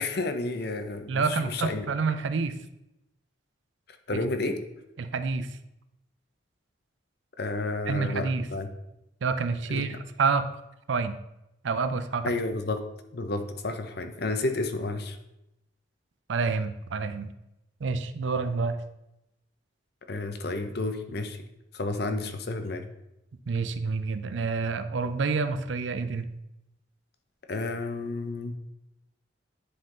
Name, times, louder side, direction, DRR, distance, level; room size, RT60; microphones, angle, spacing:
voice 1, 0.0-1.9 4.1-4.6 7.4-8.7 9.7-10.0 12.2-12.8 13.1-15.2 20.1-21.4 21.7-22.8 27.5-28.5, left 2 dB, 55° left, 7 dB, 0.7 m, -31 dB
voice 2, 1.1-2.6 4.1-4.2 5.0-5.5 7.9-8.5 9.2-10.5 10.9-11.2 11.6-12.3 16.3-17.3 17.8-18.8 23.5-26.3, right 4 dB, 75° right, 11 dB, 0.5 m, -28 dB
9.8 x 3.8 x 3.8 m, 0.88 s
head